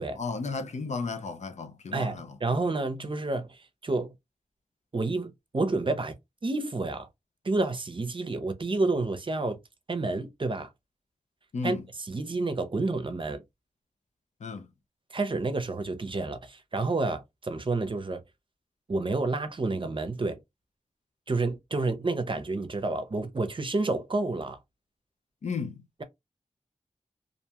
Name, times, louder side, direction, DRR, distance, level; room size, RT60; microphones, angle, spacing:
voice 1, 0.2-2.3 11.5-11.8 14.4-14.7 25.4-25.8, left 4 dB, 80° left, 0.5 m, -33 dB
voice 2, 1.9-4.1 4.9-6.1 6.4-7.1 7.4-9.6 9.9-10.7 11.6-13.4 15.1-18.2 18.9-20.4 21.3-24.6, right 3 dB, 45° right, 0.6 m, -29 dB
2.5 x 2.3 x 2.8 m
cardioid pair, 50°, 12 cm